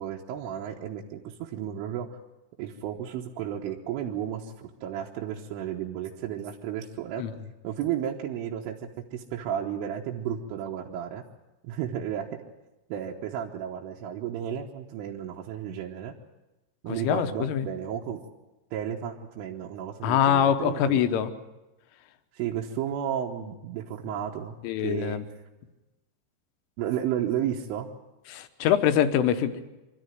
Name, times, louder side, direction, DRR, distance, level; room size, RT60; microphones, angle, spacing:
voice 1, 0.0-2.1 2.6-7.3 7.6-8.8 9.1-11.2 11.6-12.4 12.9-16.1 16.8-18.2 18.7-21.0 22.3-24.6 24.8-25.2 26.8-27.9, right 10 dB, 80° right, -2 dB, 3.6 m, -33 dB
voice 2, 16.9-17.7 20.0-21.3 24.6-25.2 28.3-29.6, left 9 dB, 80° left, 9 dB, 3.6 m, -24 dB
25.5 x 13.5 x 9.1 m, 1.0 s
omnidirectional pair, 5.8 m